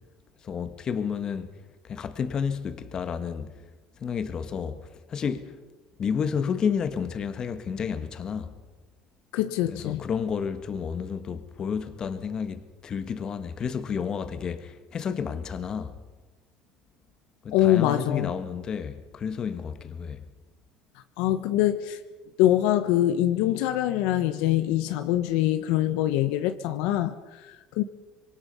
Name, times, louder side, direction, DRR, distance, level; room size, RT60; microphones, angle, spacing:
voice 1, 0.4-1.5 1.8-3.5 4.0-4.8 5.1-5.5 6.0-8.5 9.6-15.9 17.4-20.2, left 6 dB, 35° left, 1.8 m, -31 dB
voice 2, 9.3-10.0 17.5-18.3 21.2-22.0 22.4-27.8, left 13 dB, 75° left, 1.1 m, -24 dB
25.5 x 22.5 x 5.6 m
supercardioid pair, 110°, 2 cm